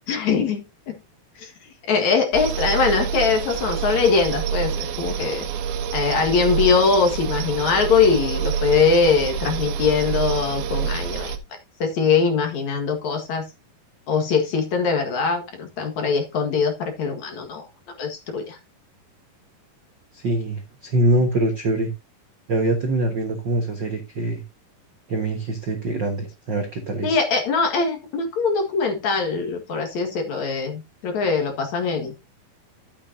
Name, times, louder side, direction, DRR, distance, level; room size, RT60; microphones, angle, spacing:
voice 1, 0.1-1.0 1.4-1.5 1.9-5.5 5.9-11.3 11.8-13.4 14.1-17.7 18.0-18.6 27.0-32.1, left 5 dB, 55° left, 2.8 m, -22 dB
sound 1, 2.3-11.4, right 8 dB, 85° right, 3.0 m, -27 dB
voice 2, 20.1-21.9 22.5-24.4 25.1-27.2, right 1 dB, 65° right, 1.1 m, -24 dB
12.0 x 8.5 x 2.7 m
omnidirectional pair, 4.3 m